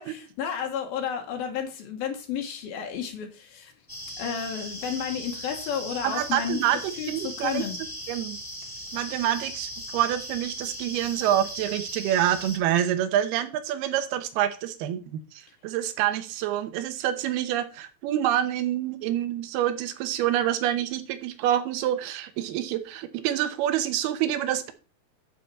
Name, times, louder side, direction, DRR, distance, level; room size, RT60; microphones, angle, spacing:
voice 1, 0.0-3.7 4.2-6.6 7.0-7.8, left 7 dB, 75° left, 3 dB, 2.9 m, -32 dB
sound 1, 3.9-12.6, equal, 5° left, 2.1 m, -38 dB
voice 2, 6.0-6.8 7.1-7.6 8.1-8.4 8.9-24.7, right 11 dB, 85° right, 10 dB, 2.9 m, -27 dB
9.0 x 7.8 x 4.2 m, 0.35 s
omnidirectional pair, 4.4 m